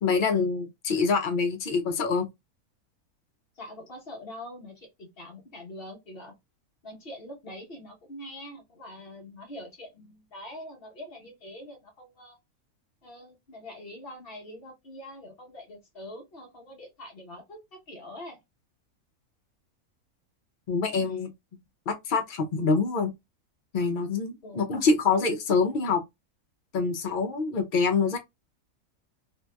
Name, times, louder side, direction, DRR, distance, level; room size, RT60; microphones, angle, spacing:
voice 1, 0.0-2.3 20.7-21.3 21.9-23.1 23.7-26.0 26.7-28.2, left 4 dB, 70° left, 0.4 m, -25 dB
voice 2, 3.5-6.3 6.8-12.4 13.0-18.4 20.9-21.2 24.4-24.7, left 1 dB, 45° left, 1.0 m, -44 dB
2.8 x 2.6 x 2.2 m
omnidirectional pair, 1.6 m